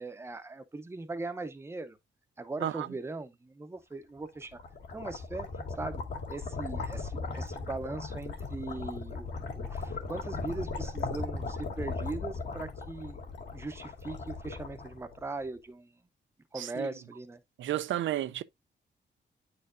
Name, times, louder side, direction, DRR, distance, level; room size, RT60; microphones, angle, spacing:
voice 1, 0.0-2.0 2.4-4.6 4.9-5.5 5.8-6.0 6.3-9.3 9.5-13.2 13.5-16.0 16.5-17.4, right 3 dB, 15° right, 0.6 m, -39 dB
sound 1, 4.3-15.4, left 3 dB, 65° left, 1.9 m, -38 dB
voice 2, 16.6-16.9 17.6-18.4, right 12 dB, 80° right, 0.4 m, -32 dB
9.5 x 4.3 x 2.4 m
wide cardioid pair, 165°, 20 cm